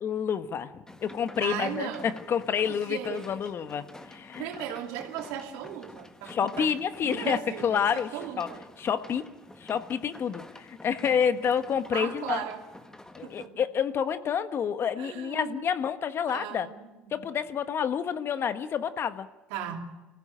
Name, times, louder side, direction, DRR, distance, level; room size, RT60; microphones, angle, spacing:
voice 1, 0.0-4.5 6.3-8.5 8.8-9.3 9.6-12.4 13.2-16.7 17.1-19.3, left 7 dB, 50° left, 11 dB, 1.3 m, -29 dB
sound 1, 0.9-13.5, left 1 dB, 10° left, 1.8 m, -48 dB
voice 2, 1.4-2.1 2.7-3.3 4.4-6.7 7.0-8.6 11.9-12.6 13.2-13.6 15.0-15.7 16.3-17.1 19.5-19.8, right 10 dB, 80° right, 3 dB, 2.8 m, -37 dB
24.5 x 15.5 x 9.0 m, 1.1 s
supercardioid pair, 75°, 5 cm